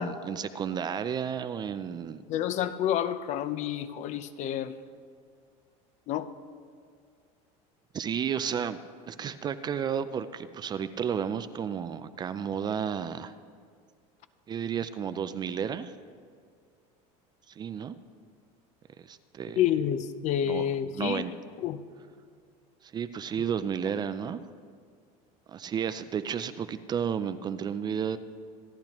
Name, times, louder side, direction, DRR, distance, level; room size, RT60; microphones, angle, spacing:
voice 1, 0.0-2.2 7.9-8.8 9.1-13.3 14.5-15.9 17.5-18.0 19.0-19.6 20.4-20.7 20.9-21.3 22.8-24.4 25.5-28.2, right 8 dB, 25° right, 12 dB, 0.4 m, -32 dB
voice 2, 2.3-4.7 6.1-6.3 19.6-21.2 21.6-21.8, left 10 dB, 45° left, 12 dB, 0.6 m, -29 dB
26.5 x 10.5 x 3.0 m, 2.1 s
cardioid pair, 140°, 17 cm